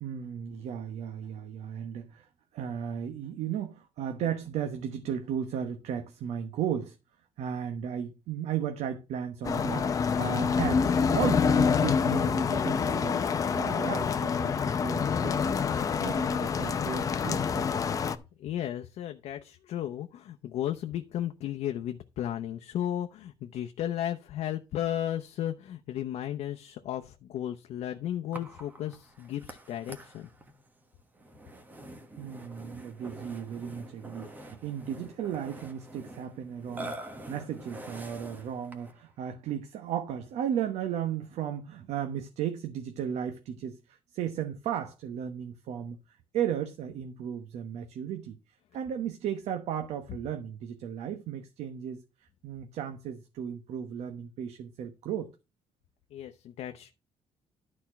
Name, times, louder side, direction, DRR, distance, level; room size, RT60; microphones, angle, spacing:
voice 1, 0.0-7.0 7.4-13.2 13.5-15.5 16.0-18.0 32.2-46.0 46.3-48.4 48.7-52.0 52.4-55.3, right 9 dB, 80° right, 1.1 m, -35 dB
sound 1, 9.4-18.2, left 6 dB, 30° left, 0.7 m, -27 dB
voice 2, 18.4-30.3 56.1-57.0, left 11 dB, 75° left, 0.8 m, -34 dB
Burping eructation, 28.3-39.0, right 1 dB, 15° right, 1.3 m, -46 dB
11.5 x 4.4 x 5.9 m
cardioid pair, 160°, 11 cm